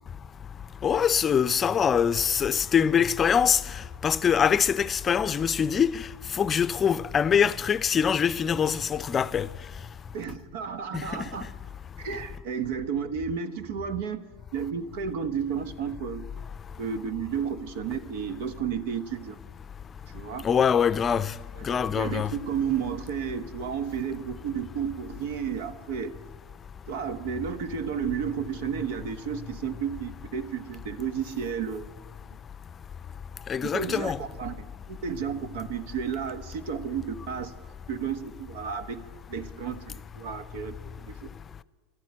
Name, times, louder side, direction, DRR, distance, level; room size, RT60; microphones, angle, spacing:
voice 1, 0.8-3.6 4.0-6.1 6.3-9.5 10.9-11.0 20.4-21.3 21.6-22.3 33.5-34.2, left 7 dB, 30° left, 0.6 m, -23 dB
voice 2, 10.1-11.5 12.0-14.2 14.5-16.2 16.8-19.4 20.1-20.4 21.6-26.2 26.9-31.8 33.7-34.5 34.9-37.5 37.9-39.0 39.3-41.3, right 7 dB, 65° right, 1.2 m, -32 dB
12.5 x 12.5 x 8.6 m
hypercardioid pair, 90°, 0 cm